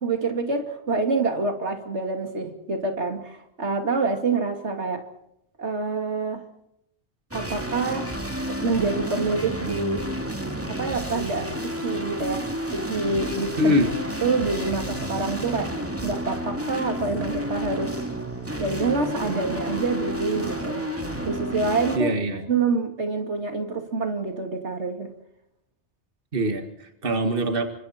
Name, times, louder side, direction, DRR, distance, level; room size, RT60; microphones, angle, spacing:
voice 1, 0.0-5.0 5.6-6.4 7.3-8.1 8.5-10.1 10.7-12.5 12.7-13.7 14.2-17.9 18.6-20.8 21.2-22.1 22.5-25.1, right 3 dB, 80° right, 5 dB, 2.8 m, -27 dB
sound 1, 7.3-22.0, equal, 10° right, 2.7 m, -31 dB
voice 2, 13.6-13.9 22.0-22.4 26.3-27.7, equal, 50° right, 6 dB, 2.2 m, -23 dB
29.5 x 25.5 x 4.4 m, 0.77 s
omnidirectional pair, 1.2 m